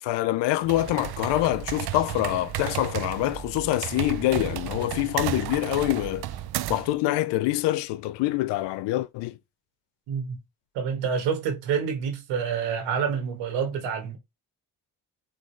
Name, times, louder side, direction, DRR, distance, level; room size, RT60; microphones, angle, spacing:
voice 1, 0.0-6.3 6.7-9.4, left 16 dB, 80° left, 0.5 m, -25 dB
sound 1, 0.6-7.0, right 13 dB, 65° right, 0.6 m, -33 dB
voice 2, 10.1-10.4 10.7-14.2, right 7 dB, 90° right, 1.6 m, -27 dB
3.9 x 3.8 x 3.2 m
supercardioid pair, 60°, 42 cm